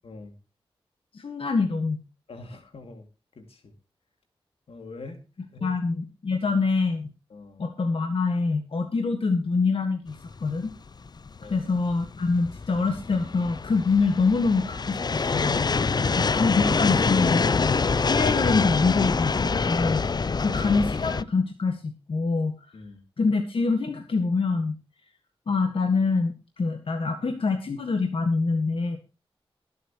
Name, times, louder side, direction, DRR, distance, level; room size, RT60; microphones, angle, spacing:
voice 1, 0.0-0.3 2.3-3.1 3.3-3.7 4.7-5.2 5.5-5.8 7.3-7.6 11.4-11.7 22.7-23.0, left 3 dB, 90° left, 5 dB, 2.5 m, -43 dB
voice 2, 1.1-2.0 5.6-7.0 7.6-10.2 10.4-10.7 11.5-15.6 16.1-17.7 18.1-20.0 20.4-22.5 23.2-24.8 25.5-29.0, left 4 dB, 70° left, 5 dB, 1.7 m, -25 dB
sound 1, 10.3-21.2, left 4 dB, 45° left, 0.5 m, -25 dB
22.0 x 8.1 x 3.0 m, 0.30 s
wide cardioid pair, 70°, 10 cm